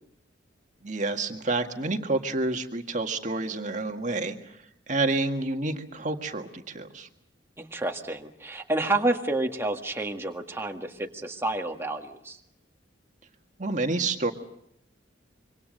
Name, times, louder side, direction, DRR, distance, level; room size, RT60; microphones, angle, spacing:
voice 1, 0.8-4.6 4.9-7.1 13.6-14.3, right 2 dB, 40° right, 5 dB, 1.8 m, -29 dB
voice 2, 7.6-12.4, right 2 dB, 15° right, 3 dB, 1.8 m, -29 dB
26.0 x 25.0 x 6.6 m, 0.74 s
head